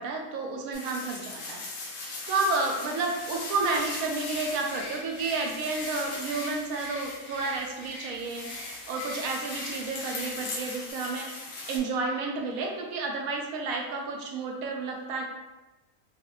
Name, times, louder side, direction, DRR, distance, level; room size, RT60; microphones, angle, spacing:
voice 1, 0.0-1.6 2.3-8.5 8.9-11.3 11.7-15.2, right 3 dB, 75° right, 1 dB, 1.0 m, -31 dB
sound 1, 0.7-11.8, left 2 dB, 65° left, 1.0 m, -39 dB
Bird, 3.6-10.7, left 2 dB, 90° left, 1.2 m, -43 dB
3.0 x 2.4 x 2.9 m, 1.1 s
omnidirectional pair, 1.5 m